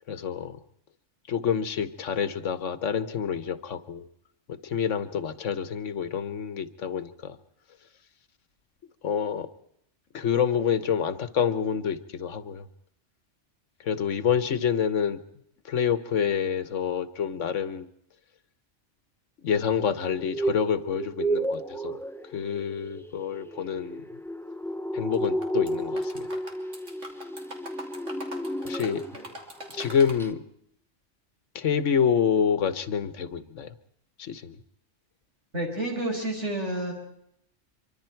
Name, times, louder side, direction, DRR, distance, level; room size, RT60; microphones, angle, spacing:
voice 1, 0.1-0.6 1.3-4.0 4.5-7.4 9.0-9.5 10.1-12.7 13.8-15.2 15.6-17.9 19.4-22.0 22.2-24.0 24.9-26.3 28.6-29.0 29.7-30.4 31.5-33.7 34.2-34.6, left 7 dB, 85° left, 12 dB, 1.4 m, -27 dB
sound 1, 20.1-29.3 29.6-29.9 30.2-30.3, right 1 dB, 5° left, 0.4 m, -32 dB
sound 2, 25.1-25.7 26.0-30.2, right 1 dB, 90° right, 3.4 m, -42 dB
voice 2, 35.5-36.9, right 1 dB, 70° right, 1 dB, 5.6 m, -30 dB
25.5 x 24.0 x 4.5 m, 0.72 s
omnidirectional pair, 1.2 m